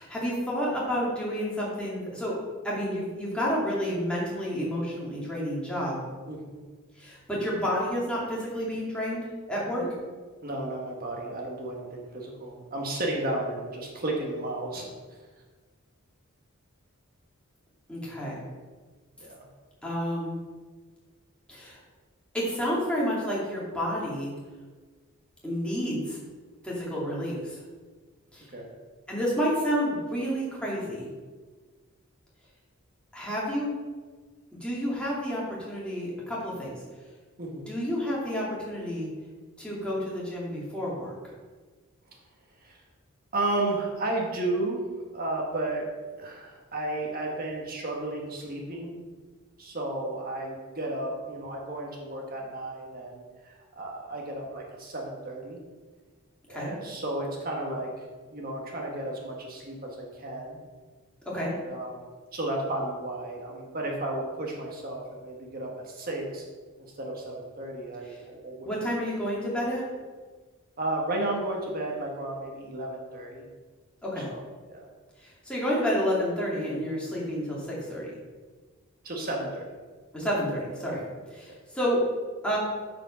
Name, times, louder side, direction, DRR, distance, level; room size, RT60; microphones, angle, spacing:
voice 1, 0.0-2.3 2.6-6.0 7.0-9.8 17.9-18.4 19.8-20.4 21.5-21.8 22.3-24.3 25.4-26.2 26.6-27.6 28.3-28.5 29.1-31.1 33.1-33.7 34.6-36.8 37.7-39.1 39.6-41.1 56.5-56.7 61.3-61.5 68.6-69.9 74.0-74.3 75.2-78.1 80.1-81.0 81.4-82.0 82.4-82.6, equal, 5° left, -6 dB, 2.5 m, -30 dB
voice 2, 6.3-6.6 9.8-9.9 10.4-14.9 19.2-19.4 28.5-28.7 37.4-37.6 42.6-42.8 43.3-44.8 45.1-49.0 49.6-55.6 56.5-57.9 58.3-60.6 61.3-62.1 62.3-66.4 66.8-68.7 70.8-73.5 74.1-74.4 74.7-74.9 79.0-79.6 80.9-81.0 81.5-81.6, right 2 dB, 40° right, -1 dB, 1.6 m, -33 dB
8.9 x 5.2 x 5.7 m, 1.4 s
head